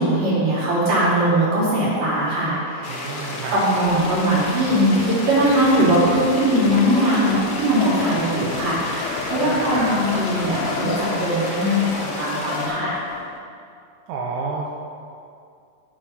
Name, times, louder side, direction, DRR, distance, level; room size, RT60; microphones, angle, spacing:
voice 1, 0.0-3.0 3.5-12.9, equal, 55° right, -8 dB, 4.0 m, -20 dB
sound 1, 2.8-12.7, left 1 dB, 50° left, 1.5 m, -31 dB
voice 2, 2.9-3.6 9.4-9.9 14.1-14.7, right 4 dB, 75° right, -2 dB, 2.0 m, -30 dB
sound 2, 3.9-13.4, left 6 dB, 85° left, 2.3 m, -33 dB
sound 3, 8.2-12.7 13.0-13.1, right 1 dB, 40° right, 2.2 m, -38 dB
11.5 x 5.5 x 5.7 m, 2.4 s
omnidirectional pair, 3.9 m